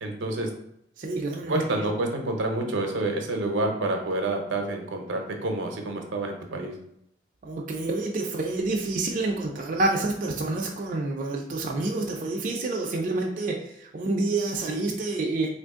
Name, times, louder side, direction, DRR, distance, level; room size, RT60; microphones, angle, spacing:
voice 1, 0.0-0.5 1.5-6.7, right 2 dB, 85° right, 3 dB, 0.6 m, -28 dB
voice 2, 1.0-1.6 7.4-15.5, right 2 dB, 45° right, -1 dB, 0.4 m, -28 dB
3.0 x 2.5 x 3.6 m, 0.78 s
head